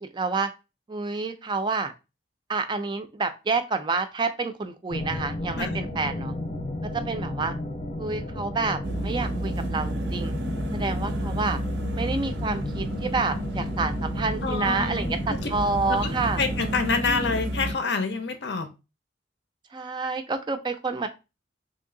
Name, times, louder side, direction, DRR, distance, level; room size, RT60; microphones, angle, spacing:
voice 1, 0.0-0.5 0.9-1.9 2.5-6.3 6.9-7.5 8.0-10.3 10.7-11.6 11.9-16.4 17.0-17.3 19.7-21.1, right 4 dB, 25° right, 0.3 m, -28 dB
sound 1, 4.9-16.8, left 1 dB, 30° left, 0.5 m, -34 dB
sound 2, 8.8-17.7, right 1 dB, 75° right, 0.5 m, -31 dB
voice 2, 14.4-15.5 15.9-16.1 16.4-18.7, left 4 dB, 70° left, 0.6 m, -27 dB
3.1 x 2.7 x 3.7 m
head